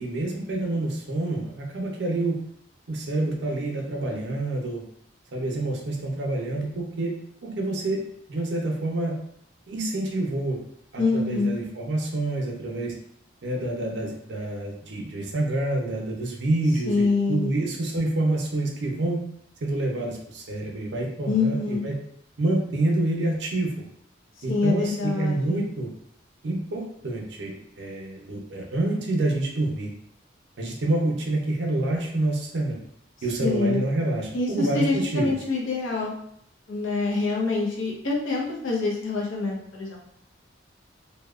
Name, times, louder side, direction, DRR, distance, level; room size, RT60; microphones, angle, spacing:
voice 1, 0.0-2.4 2.9-4.8 5.3-7.1 7.4-8.0 8.3-9.2 9.7-10.6 10.9-12.9 13.4-19.2 19.6-22.0 22.4-23.7 24.4-25.9 26.4-29.9 30.6-32.8 33.2-35.4, right 2 dB, 65° right, 0 dB, 0.5 m, -27 dB
voice 2, 11.0-11.5 16.9-17.5 21.3-21.8 24.5-25.6 33.4-33.8 34.3-36.1 36.7-40.0, left 3 dB, 90° left, -1 dB, 0.7 m, -25 dB
2.7 x 2.1 x 2.3 m, 0.70 s
head